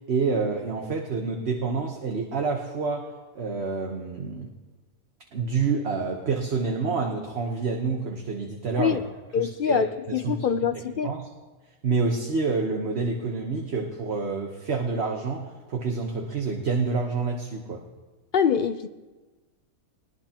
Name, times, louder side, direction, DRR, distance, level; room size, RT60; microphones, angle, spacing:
voice 1, 0.1-3.1 3.3-4.5 5.3-9.0 9.4-10.4 11.0-11.2 11.8-17.8, right 4 dB, 50° right, 2 dB, 1.4 m, -28 dB
voice 2, 9.3-11.1 18.3-18.9, left 7 dB, 65° left, 10 dB, 0.5 m, -24 dB
20.5 x 19.5 x 2.9 m, 1.3 s
omnidirectional pair, 1.5 m